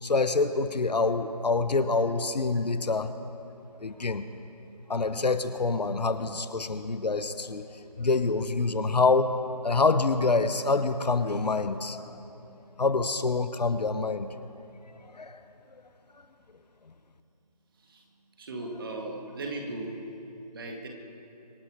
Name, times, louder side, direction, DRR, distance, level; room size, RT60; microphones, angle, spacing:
voice 1, 0.0-3.1 3.8-4.3 4.9-7.6 8.0-9.3 9.6-12.2 12.8-14.3 15.1-15.4, left 3 dB, 75° left, 11 dB, 1.0 m, -26 dB
voice 2, 18.4-19.9 20.5-20.9, right 2 dB, 35° right, 2 dB, 1.9 m, -37 dB
25.0 x 10.0 x 5.0 m, 3.0 s
figure-of-eight pair, 165°, 21 cm